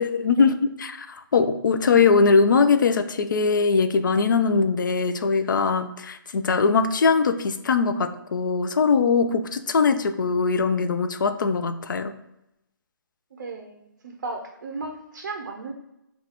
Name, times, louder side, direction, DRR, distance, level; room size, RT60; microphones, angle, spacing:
voice 1, 0.0-12.1, left 5 dB, 60° left, 9 dB, 0.4 m, -21 dB
voice 2, 13.4-15.7, right 3 dB, 50° right, 2 dB, 0.5 m, -35 dB
2.8 x 2.3 x 4.0 m, 0.87 s
hypercardioid pair, 170°, 12 cm